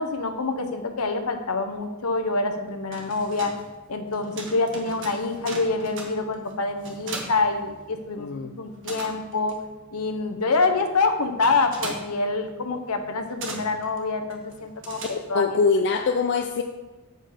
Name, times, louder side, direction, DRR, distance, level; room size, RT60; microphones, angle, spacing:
voice 1, 0.0-3.5 3.9-9.5 9.9-15.0 15.3-15.6, left 3 dB, 80° left, 6 dB, 0.9 m, -26 dB
sound 1, 2.7-8.3 8.5-15.6, right 3 dB, 60° right, 1.4 m, -40 dB
voice 2, 8.2-8.6 15.3-16.6, left 4 dB, 55° left, 4 dB, 0.5 m, -23 dB
7.7 x 5.3 x 5.0 m, 1.1 s
head